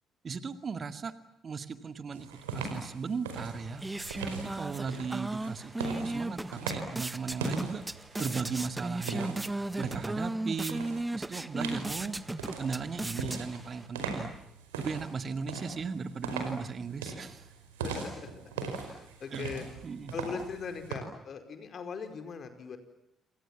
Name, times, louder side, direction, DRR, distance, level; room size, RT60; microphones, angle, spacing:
voice 1, 0.2-1.1 1.4-3.8 4.3-7.8 8.2-10.8 11.1-12.2 12.6-14.3 14.8-17.5 18.7-18.9 19.3-19.5 19.8-20.1, right 5 dB, 40° right, 10 dB, 2.2 m, -37 dB
sound 1, 2.1-10.2 10.7-11.0 11.6-20.9, right 4 dB, 80° right, 5.0 m, -40 dB
sound 2, 3.3-13.9, right 2 dB, 15° right, 1.5 m, -36 dB
voice 2, 17.8-19.6 20.1-22.8, left 5 dB, 50° left, 8 dB, 5.0 m, -40 dB
29.0 x 27.5 x 7.4 m, 0.81 s
figure-of-eight pair, 45°, 0 cm